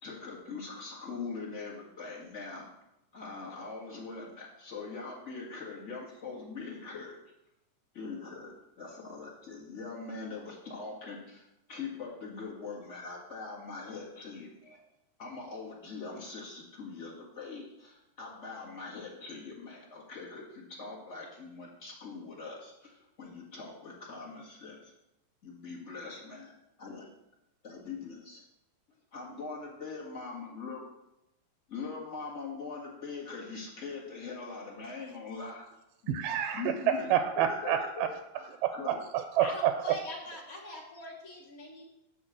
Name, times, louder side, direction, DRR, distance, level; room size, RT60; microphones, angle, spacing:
voice 1, 0.0-2.6 3.1-7.2 7.9-14.8 15.2-24.9 25.4-26.5 26.8-27.1 27.6-28.4 29.1-30.8 31.7-35.6 36.0-36.1 36.5-37.1 37.5-37.9 38.3-39.0, left 4 dB, 30° left, 1.5 m, -42 dB
voice 2, 36.1-38.1 38.6-40.0, right 10 dB, 85° right, 2.2 m, -28 dB
voice 3, 39.4-41.8, left 1 dB, 75° left, 0.8 m, -42 dB
10.0 x 3.7 x 7.2 m
omnidirectional pair, 3.8 m